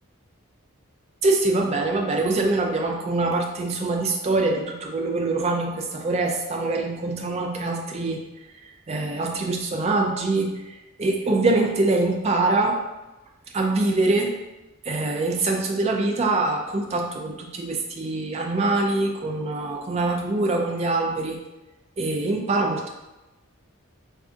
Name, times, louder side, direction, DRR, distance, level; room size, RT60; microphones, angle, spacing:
voice 1, 1.2-8.2 8.9-12.8 13.5-14.3 14.8-21.4 22.0-22.9, right 2 dB, 30° right, 1 dB, 0.4 m, -24 dB
3.7 x 2.3 x 2.5 m, 1.1 s
head